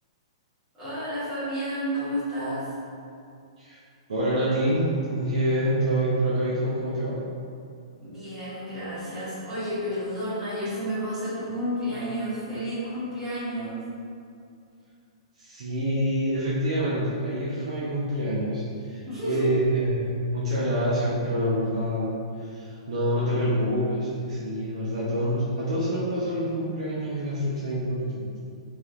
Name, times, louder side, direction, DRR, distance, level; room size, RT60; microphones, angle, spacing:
voice 1, 0.7-2.7 8.0-13.8 19.1-19.5, equal, 20° right, -12 dB, 1.5 m, -31 dB
voice 2, 4.1-7.2 15.4-28.6, equal, 75° right, -9 dB, 0.7 m, -26 dB
3.2 x 2.9 x 2.5 m, 2.4 s
hypercardioid pair, 135°, 3 cm